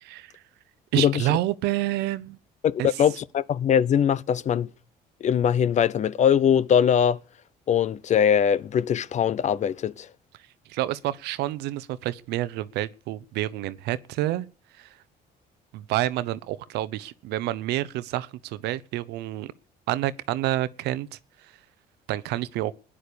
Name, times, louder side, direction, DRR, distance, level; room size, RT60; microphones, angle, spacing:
voice 1, 0.0-0.3 0.9-2.4 2.8-2.9 10.7-14.5 14.8-14.9 15.7-19.5 19.9-21.1 22.1-22.7, right 15 dB, 85° right, 0.8 m, -28 dB
voice 2, 1.0-1.3 2.6-4.7 5.2-7.2 7.7-10.1, left 8 dB, 45° left, 0.6 m, -22 dB
16.0 x 10.0 x 6.9 m
cardioid pair, 110°, 17 cm